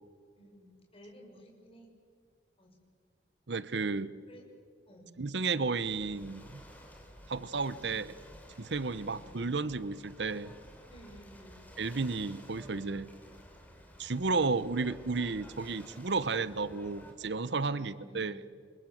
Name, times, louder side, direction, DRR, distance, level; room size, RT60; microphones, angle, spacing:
voice 1, 0.4-1.9 2.6-2.8 4.3-4.4 4.9-5.1 7.8-8.0 9.2-9.4 10.9-11.6 17.6-18.4, right 1 dB, 35° left, 1 dB, 6.9 m, -54 dB
voice 2, 3.5-4.1 5.2-6.6 7.3-8.1 8.6-10.5 11.8-13.1 14.0-18.4, right 4 dB, 70° right, 16 dB, 0.8 m, -32 dB
Ocean / Boat Water vehicle, 5.8-17.1, equal, 10° left, 4.5 m, -53 dB
29.5 x 24.5 x 7.8 m, 2.1 s
head